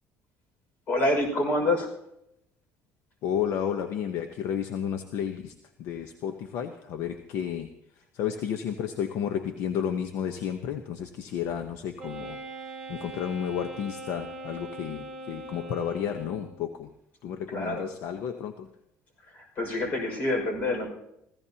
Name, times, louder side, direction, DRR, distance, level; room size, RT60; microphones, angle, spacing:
voice 1, 0.9-1.9 17.5-17.9 19.3-20.9, left 1 dB, 40° left, 3 dB, 5.6 m, -27 dB
voice 2, 3.2-12.4 12.9-16.9 17.2-18.7, left 8 dB, 65° left, 7 dB, 0.9 m, -32 dB
Wind instrument woodwind instrument, 12.0-16.6, right 2 dB, 10° right, 3.9 m, -41 dB
25.5 x 16.0 x 2.9 m, 0.81 s
cardioid pair, 150°, 5 cm